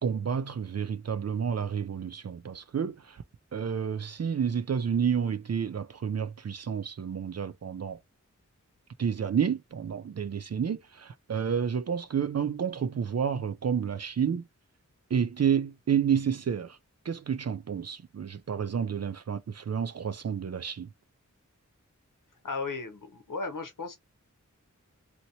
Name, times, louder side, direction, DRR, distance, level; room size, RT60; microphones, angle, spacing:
voice 1, 0.0-3.2 3.5-8.0 9.0-14.5 15.1-16.8 17.0-20.9, right 7 dB, 55° right, 0.4 m, -30 dB
voice 2, 22.4-24.0, left 4 dB, 85° left, 0.9 m, -35 dB
2.9 x 2.8 x 2.7 m
wide cardioid pair, 50°, 31 cm